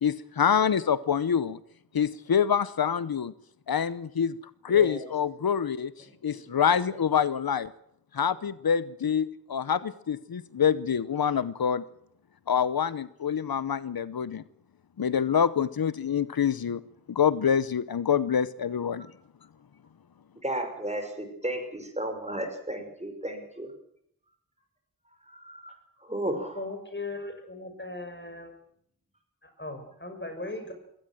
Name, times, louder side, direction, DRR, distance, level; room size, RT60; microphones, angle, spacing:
voice 1, 0.0-1.6 1.9-3.3 3.7-4.4 4.6-5.9 6.2-7.7 8.1-11.8 12.5-14.4 15.0-16.8 17.1-19.1, left 7 dB, 90° left, 17 dB, 0.8 m, -26 dB
voice 2, 4.7-5.1 6.1-6.6 20.4-23.7 25.2-26.7, right 1 dB, 20° right, 5 dB, 5.8 m, -34 dB
voice 3, 26.5-28.5 29.4-30.7, left 2 dB, 30° left, 6 dB, 6.3 m, -38 dB
22.0 x 17.5 x 7.7 m, 0.70 s
wide cardioid pair, 50°, 35 cm